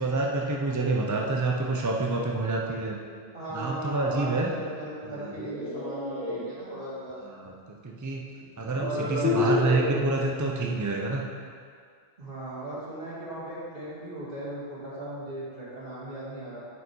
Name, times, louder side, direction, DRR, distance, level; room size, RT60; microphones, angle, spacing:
voice 1, 0.0-3.0 3.5-4.5 5.2-5.3 7.2-8.2 8.6-11.2, right 3 dB, 25° right, 0 dB, 0.4 m, -28 dB
voice 2, 3.3-7.2 8.8-9.6 12.2-16.6, right 1 dB, 50° right, -8 dB, 2.4 m, -37 dB
sound 1, 5.1-6.4 7.9-8.0 8.7-10.1, left 3 dB, 10° left, 2.3 m, -29 dB
8.1 x 6.4 x 4.6 m, 2.1 s
omnidirectional pair, 1.2 m